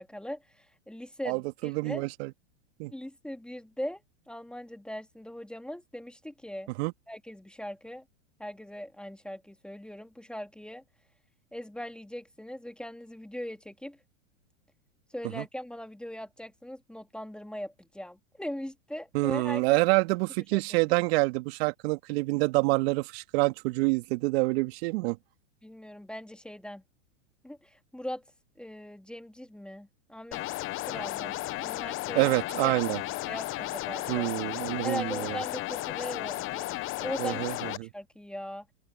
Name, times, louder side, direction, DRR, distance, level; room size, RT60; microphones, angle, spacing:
voice 1, 0.0-2.1 2.9-6.7 7.1-8.0 8.4-10.8 11.5-14.0 15.1-19.6 20.5-20.6 25.6-26.8 27.4-28.2 28.6-30.4 30.9-32.7 33.3-34.3 34.8-36.7 37.0-37.5 37.8-38.6, equal, ahead, 2.5 m, -40 dB
voice 2, 1.3-2.3 2.8-2.9 6.8-6.9 15.4-15.5 19.1-25.2 32.2-33.0 34.1-35.4 37.2-37.9, right 25 dB, 50° right, 2.4 m, -27 dB
sound 1, 30.3-37.8, left 18 dB, 30° left, 1.1 m, -34 dB
open air
hypercardioid pair, 115°, 39 cm